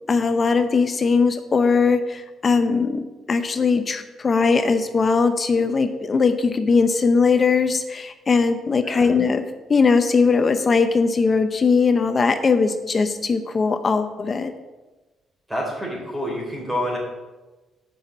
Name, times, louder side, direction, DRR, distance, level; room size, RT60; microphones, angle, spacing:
voice 1, 0.1-9.4 9.7-14.5, left 4 dB, 35° left, 9 dB, 0.7 m, -20 dB
voice 2, 8.8-9.1 15.5-17.0, equal, 10° right, -4 dB, 3.6 m, -28 dB
7.7 x 5.9 x 7.6 m, 1.2 s
cardioid pair, 90°, 0 cm